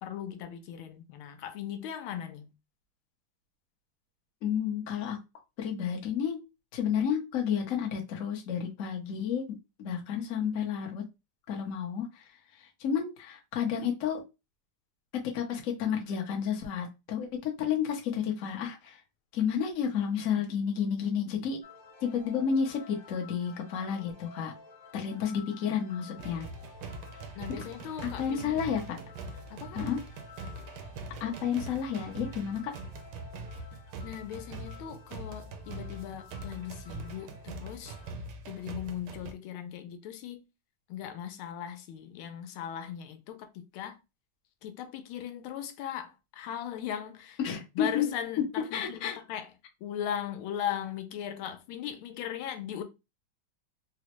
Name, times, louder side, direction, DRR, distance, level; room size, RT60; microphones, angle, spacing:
voice 1, 0.0-2.5 27.3-28.6 29.5-29.8 34.0-38.0 38.5-40.4 40.9-44.0 44.6-47.4 47.8-49.5 49.8-52.8, left 10 dB, 85° left, 1.4 m, -38 dB
voice 2, 4.4-5.2 5.6-6.4 6.7-9.5 9.8-11.0 11.5-12.3 12.6-14.2 15.2-19.0 19.3-21.6 22.0-24.5 24.9-26.5 27.5-27.6 28.0-29.0 29.7-30.0 31.2-32.7 47.4-48.1 48.7-49.2, left 7 dB, 60° left, 0.8 m, -31 dB
sound 1, 21.6-38.1, left 5 dB, 35° left, 1.0 m, -53 dB
sound 2, 26.2-39.3, right 3 dB, 70° right, 1.0 m, -43 dB
4.0 x 2.1 x 2.9 m
omnidirectional pair, 2.3 m